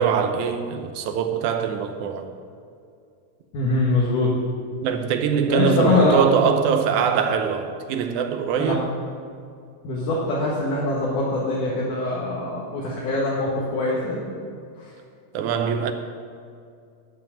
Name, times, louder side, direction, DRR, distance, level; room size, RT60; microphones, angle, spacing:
voice 1, 0.0-2.3 4.8-8.8 15.3-15.9, right 7 dB, 75° right, 2.0 m, -23 dB
voice 2, 3.5-4.3 5.5-6.2 8.6-8.8 9.8-14.2 14.8-14.9, left 2 dB, 70° left, 2.9 m, -23 dB
12.5 x 5.7 x 8.7 m
omnidirectional pair, 3.8 m